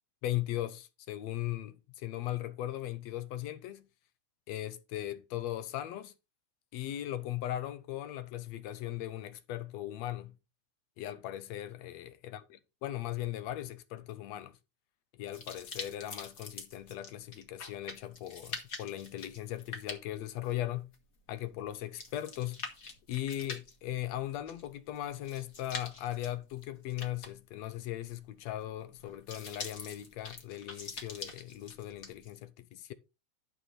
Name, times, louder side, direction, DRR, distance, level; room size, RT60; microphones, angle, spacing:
voice 1, 0.2-3.9 4.5-6.1 6.7-10.3 11.0-14.5 15.1-20.9 21.3-22.6 23.1-32.9, left 13 dB, 75° left, 1.7 m, -38 dB
sound 1, 15.3-32.3, left 4 dB, 35° left, 1.5 m, -45 dB
11.0 x 5.9 x 4.2 m
omnidirectional pair, 3.6 m